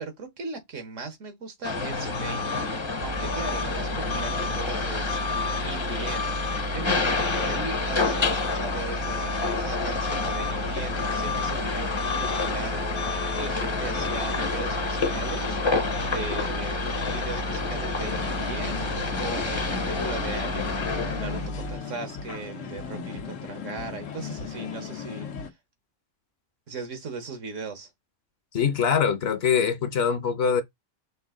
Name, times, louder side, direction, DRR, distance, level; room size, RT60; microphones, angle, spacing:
voice 1, 0.0-16.8 17.1-25.5 26.7-27.9, right 4 dB, 80° right, 1.5 m, -38 dB
sound 1, 1.6-21.5, left 4 dB, 30° left, 0.6 m, -28 dB
sound 2, 3.0-21.8, right 1 dB, 45° right, 0.5 m, -35 dB
sound 3, 18.0-25.5, left 6 dB, 85° left, 1.2 m, -37 dB
voice 2, 28.5-30.6, left 7 dB, 60° left, 0.9 m, -23 dB
5.4 x 2.4 x 3.7 m
omnidirectional pair, 1.3 m